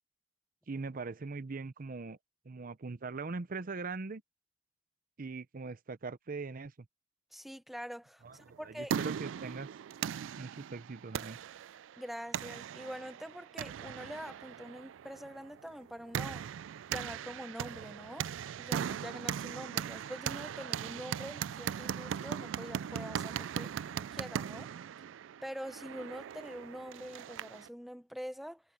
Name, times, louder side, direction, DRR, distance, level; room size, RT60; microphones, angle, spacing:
voice 1, 0.7-2.2 2.5-4.2 5.2-6.7 8.2-9.7 10.4-11.4, right 4 dB, 45° right, 0.6 m, -41 dB
voice 2, 7.3-8.9 12.0-16.5 16.9-24.7 25.4-28.6, equal, ahead, 0.8 m, -45 dB
sound 1, 8.5-27.7, right 8 dB, 80° right, 0.3 m, -39 dB
head